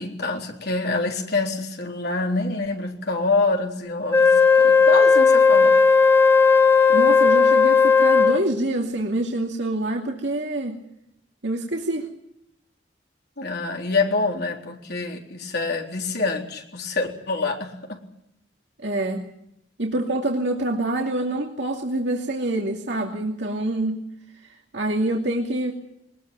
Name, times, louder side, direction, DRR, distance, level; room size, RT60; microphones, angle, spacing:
voice 1, 0.0-4.3 4.5-5.8 13.4-18.0, left 3 dB, 60° left, 1 dB, 3.8 m, -26 dB
Wind instrument woodwind instrument, 4.1-8.5, left 5 dB, 15° left, 1.4 m, -15 dB
voice 2, 6.9-10.8 11.4-12.1 18.8-19.3 19.8-24.0 24.7-25.7, right 1 dB, 70° right, 0 dB, 2.6 m, -26 dB
22.0 x 20.0 x 9.0 m, 0.78 s
head